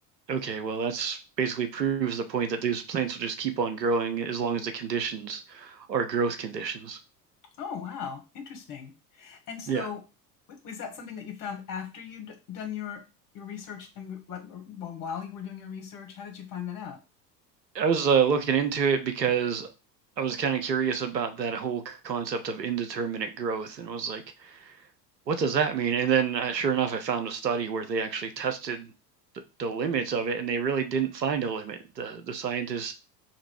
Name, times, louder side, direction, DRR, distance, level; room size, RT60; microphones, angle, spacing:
voice 1, 0.3-7.0 9.7-9.9 17.7-19.7 20.2-24.8 25.3-28.9 29.6-32.9, right 6 dB, 80° right, 0.8 m, -28 dB
voice 2, 7.6-10.0 10.6-13.0 13.3-17.0, left 7 dB, 40° left, 1.2 m, -38 dB
3.0 x 2.9 x 4.3 m
figure-of-eight pair, 75°, 50 cm